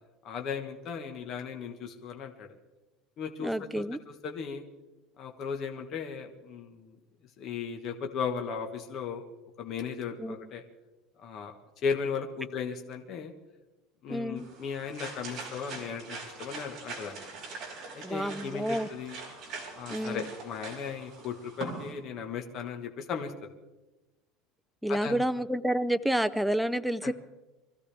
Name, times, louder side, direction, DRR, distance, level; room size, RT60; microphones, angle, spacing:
voice 1, 0.2-2.5 3.2-3.8 4.2-4.6 5.2-7.0 7.4-9.2 9.6-10.6 11.2-11.6 11.8-13.3 14.0-17.3 17.9-19.2 19.8-23.3 24.9-25.3 27.0-27.1, left 6 dB, 35° left, 3 dB, 1.3 m, -36 dB
voice 2, 3.4-4.0 10.2-10.4 14.1-14.5 18.0-18.9 19.9-20.3 24.8-27.1, right 1 dB, ahead, 11 dB, 0.4 m, -29 dB
sound 1, 14.4-21.9, right 4 dB, 35° right, 4.5 m, -43 dB
24.0 x 15.0 x 3.4 m, 1.1 s
cardioid pair, 170°, 0 cm